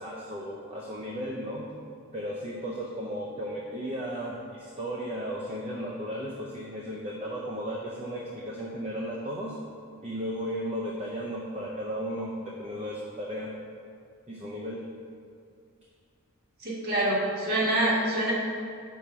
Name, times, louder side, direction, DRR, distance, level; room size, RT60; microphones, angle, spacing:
voice 1, 0.0-1.7 2.1-9.6 10.0-13.5 14.3-14.8, equal, 25° right, -3 dB, 0.5 m, -35 dB
voice 2, 16.6-18.3, right 1 dB, 45° right, -5 dB, 1.6 m, -26 dB
5.4 x 4.3 x 6.1 m, 2.3 s
head